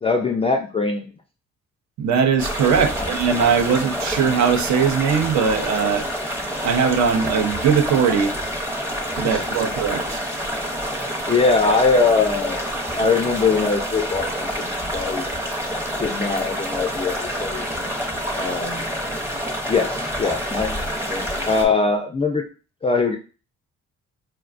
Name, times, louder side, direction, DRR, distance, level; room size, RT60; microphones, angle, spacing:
voice 1, 0.0-1.1 9.2-9.4 11.0-12.7 13.0-15.6 16.0-17.9 18.4-18.9 19.7-20.8 21.1-22.5 22.8-23.2, left 4 dB, 20° left, 0.3 m, -22 dB
voice 2, 2.0-6.1 6.6-8.3 9.2-10.2, right 6 dB, 65° right, 0.6 m, -20 dB
sound 1, 2.4-21.6, equal, 10° right, 0.7 m, -27 dB
4.4 x 2.2 x 2.4 m
cardioid pair, 90°, 30 cm